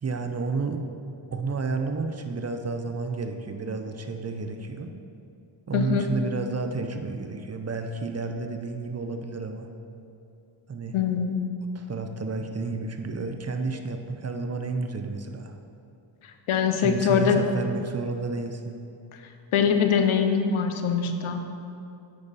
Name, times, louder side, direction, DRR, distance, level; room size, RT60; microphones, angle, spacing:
voice 1, 0.0-0.8 1.3-4.9 5.7-9.7 10.7-11.0 11.7-15.6 16.8-18.8, right 4 dB, 30° right, 5 dB, 0.6 m, -31 dB
voice 2, 5.7-6.1 10.9-11.4 16.2-17.4 19.5-21.4, left 7 dB, 75° left, 6 dB, 0.8 m, -23 dB
8.6 x 5.3 x 4.1 m, 2.6 s
cardioid pair, 60°, 50 cm